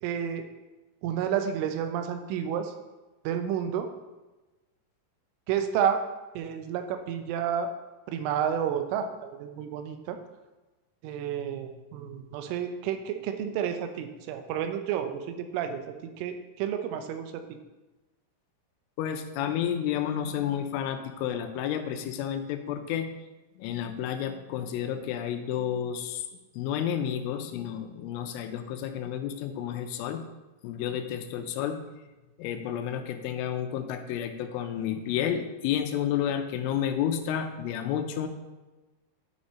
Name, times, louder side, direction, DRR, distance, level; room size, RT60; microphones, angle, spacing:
voice 1, 0.0-0.4 1.0-2.7 3.2-3.9 5.5-6.0 6.4-7.7 8.1-10.2 11.0-17.6, right 8 dB, 90° right, 7 dB, 3.2 m, -30 dB
voice 2, 19.0-23.1 23.6-26.2 26.6-30.2 30.6-31.8 32.4-38.3, left 9 dB, 90° left, 6 dB, 3.2 m, -31 dB
9.5 x 5.1 x 4.2 m, 1.1 s
omnidirectional pair, 5.5 m